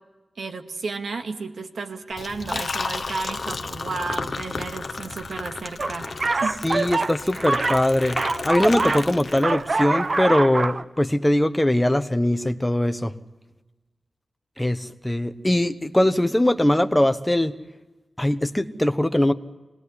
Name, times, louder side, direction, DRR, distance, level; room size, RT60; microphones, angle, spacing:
voice 1, 0.4-6.1 6.4-6.6, right 4 dB, 80° right, 6 dB, 2.2 m, -32 dB
Liquid, 2.1-9.8, left 4 dB, 50° left, 1.1 m, -33 dB
sound 1, 5.8-9.1 9.3-10.8, right 3 dB, 45° right, 0.8 m, -25 dB
voice 2, 6.6-8.2 8.4-13.1 14.6-17.5 18.2-19.3, left 1 dB, 10° left, 9 dB, 1.1 m, -21 dB
26.0 x 19.0 x 9.8 m, 1.2 s
wide cardioid pair, 120°, 0 cm